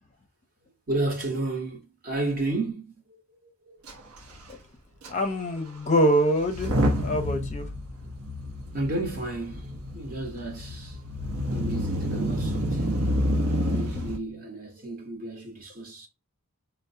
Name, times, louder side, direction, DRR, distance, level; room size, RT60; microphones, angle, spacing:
voice 1, 0.9-3.8 8.7-11.0 11.5-13.2 13.7-16.1, right 2 dB, 40° right, 0.9 m, -32 dB
Motor vehicle (road) / Engine starting / Accelerating revving vroom, 3.9-4.0 4.2-4.4 5.0-5.1 6.4-14.2, equal, 75° right, 0.8 m, -29 dB
voice 2, 5.1-6.7 7.0-7.7, equal, 30° left, 0.5 m, -24 dB
4.3 x 2.0 x 2.6 m
head